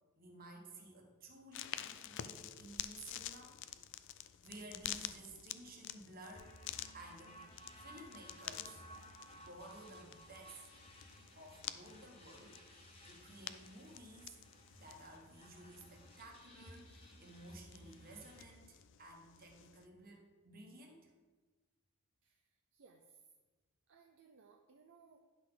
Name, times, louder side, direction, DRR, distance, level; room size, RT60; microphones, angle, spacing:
voice 1, 0.2-3.6 4.1-6.5 6.9-7.5 7.8-8.8 9.3-10.7 11.4-12.6 13.0-14.4 14.8-21.1, right 2 dB, 40° right, 1 dB, 1.3 m, -55 dB
sound 1, 1.5-19.9, left 12 dB, 55° left, 0.4 m, -50 dB
sound 2, 6.4-18.5, equal, 25° left, 1.2 m, -58 dB
voice 2, 22.2-23.2 23.9-25.2, right 5 dB, 60° right, 3 dB, 0.5 m, -64 dB
10.0 x 5.9 x 3.9 m, 1.3 s
head